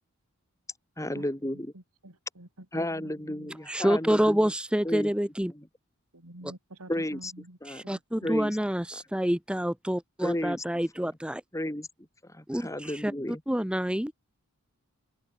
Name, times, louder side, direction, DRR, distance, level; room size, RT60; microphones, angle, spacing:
voice 1, 1.0-1.7 2.7-4.4 4.8-5.1 5.5-5.7 6.9-7.3 7.6-7.8 8.2-8.5 10.2-10.6 11.5-11.9 12.2-13.4, left 1 dB, 15° left, 2.7 m, -32 dB
voice 2, 1.7-2.7 2.9-3.6 6.1-7.6 7.8-8.6, right 1 dB, 85° right, 3.7 m, -48 dB
voice 3, 3.7-5.5 7.6-11.4 12.5-13.1 13.5-14.1, equal, 5° right, 1.0 m, -27 dB
open air
head